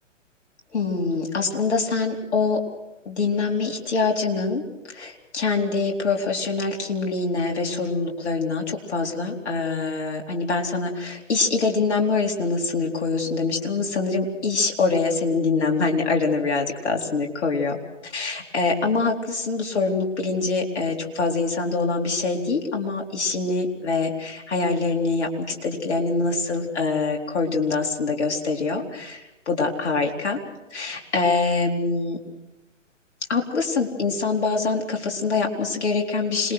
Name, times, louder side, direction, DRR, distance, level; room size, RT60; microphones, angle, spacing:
voice 1, 0.7-2.6 3.1-4.6 4.9-17.8 18.1-30.4 30.7-32.2 33.3-36.5, left 4 dB, 60° left, 1 dB, 4.2 m, -24 dB
26.5 x 22.0 x 6.4 m, 0.96 s
figure-of-eight pair, 125°, 38 cm